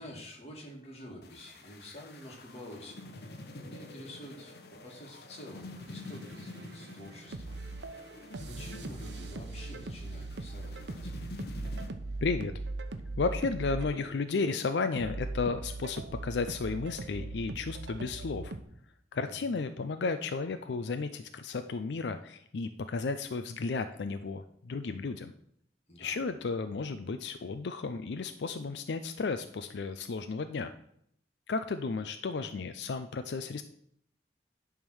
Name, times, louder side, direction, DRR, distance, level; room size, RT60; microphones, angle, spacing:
voice 1, 0.0-7.6 8.5-11.3 19.2-19.3 25.9-26.2, equal, 35° left, -1 dB, 2.0 m, -48 dB
sound 1, 1.2-11.9, left 2 dB, 60° left, 1.1 m, -47 dB
sound 2, 5.9-18.6, right 2 dB, 80° right, 0.8 m, -40 dB
voice 2, 12.2-12.5 13.2-18.5 19.1-25.3 26.0-30.7 31.5-33.6, left 4 dB, 80° left, 9 dB, 0.4 m, -33 dB
10.5 x 3.6 x 6.2 m, 0.71 s
head